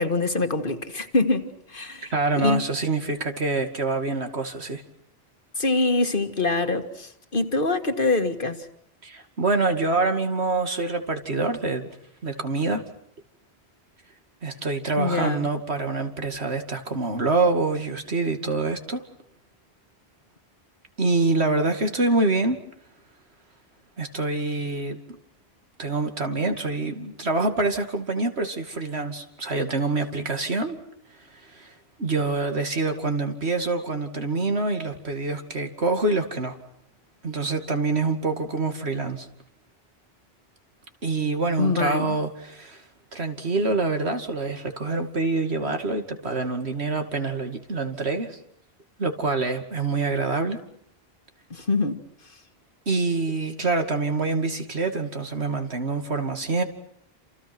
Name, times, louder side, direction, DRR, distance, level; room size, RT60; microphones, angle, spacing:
voice 1, 0.0-2.6 5.6-8.7 15.0-15.5 41.6-42.2 51.5-52.0, left 3 dB, 55° left, 2.0 m, -24 dB
voice 2, 2.1-4.8 9.0-11.9 12.2-12.8 14.4-19.0 21.0-22.6 24.0-25.0 25.8-30.8 31.4-31.7 32.0-36.6 37.2-39.3 41.0-42.8 43.1-48.4 49.0-50.6 52.9-56.6, right 3 dB, 90° right, 2.8 m, -26 dB
29.0 x 28.0 x 6.2 m
omnidirectional pair, 1.1 m